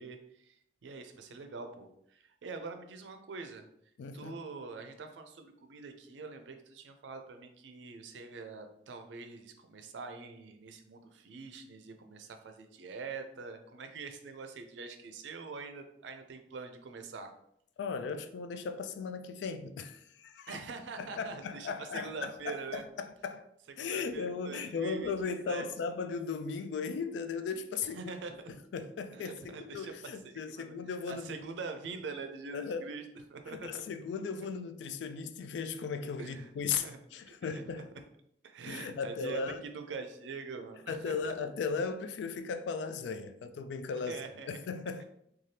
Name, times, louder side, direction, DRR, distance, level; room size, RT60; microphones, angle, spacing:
voice 1, 0.0-3.7 4.1-17.3 20.5-22.8 23.8-25.7 28.0-28.5 29.1-29.9 30.2-30.7 31.1-33.0 33.3-33.8 36.2-36.5 36.8-37.0 37.3-37.6 38.4-39.4 39.7-41.3 44.1-44.6, right 4 dB, 90° right, 0.4 m, -44 dB
voice 2, 4.0-4.4 17.8-20.6 21.0-23.4 23.8-28.1 28.5-31.4 32.5-32.9 33.5-38.0 38.7-39.6 40.9-44.2 44.5-45.0, left 5 dB, 80° left, 0.3 m, -37 dB
3.2 x 2.3 x 2.7 m
head